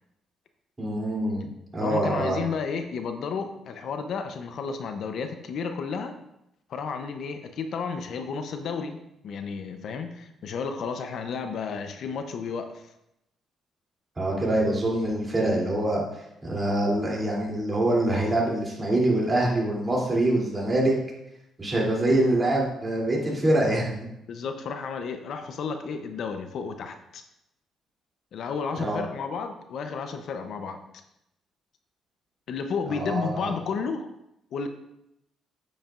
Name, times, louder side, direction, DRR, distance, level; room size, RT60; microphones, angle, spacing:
voice 1, 0.8-2.4 14.2-16.0 16.4-20.9 21.6-24.1 28.8-29.0 32.9-33.5, right 1 dB, 25° right, -3 dB, 3.0 m, -25 dB
voice 2, 1.8-6.1 6.7-12.9 24.3-27.2 28.3-30.8 32.5-34.1 34.5-34.7, left 5 dB, 70° left, 7 dB, 0.7 m, -32 dB
8.8 x 8.6 x 2.5 m, 0.83 s
cardioid pair, 85°, 0 cm